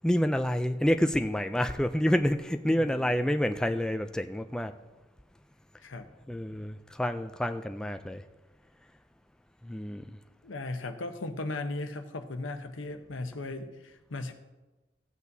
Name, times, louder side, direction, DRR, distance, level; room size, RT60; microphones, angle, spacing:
voice 1, 0.0-4.7 6.3-8.2 9.6-10.0, equal, 5° left, 7 dB, 0.3 m, -28 dB
voice 2, 2.6-3.3 5.8-6.1 10.4-14.3, left 2 dB, 85° left, 7 dB, 0.9 m, -37 dB
16.0 x 8.4 x 2.7 m, 1.1 s
head